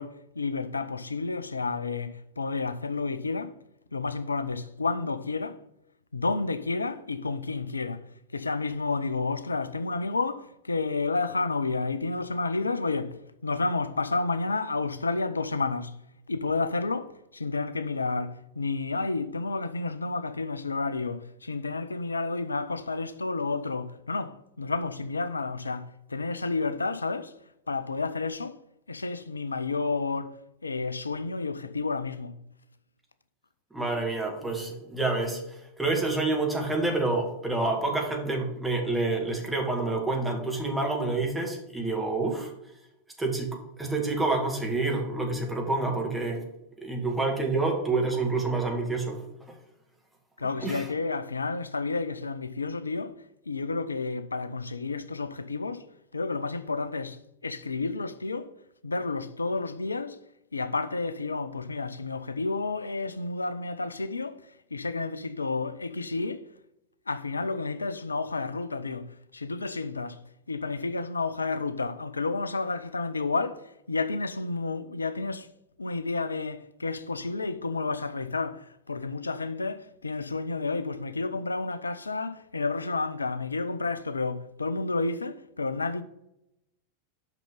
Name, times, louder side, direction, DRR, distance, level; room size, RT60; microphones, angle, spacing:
voice 1, 0.0-3.5 3.9-5.6 6.1-8.0 8.3-16.0 16.3-27.3 27.7-28.6 28.9-30.3 30.6-32.4 50.4-53.1 53.5-55.9 56.1-58.5 58.8-60.2 60.5-64.4 64.7-66.4 67.1-70.2 70.5-75.5 75.8-86.0, left 3 dB, 80° left, 0.5 m, -31 dB
voice 2, 33.7-42.5 43.2-46.4 46.8-49.2 50.6-50.9, right 3 dB, 5° right, 1.9 m, -28 dB
6.0 x 5.7 x 5.3 m
figure-of-eight pair, 90°, 0 cm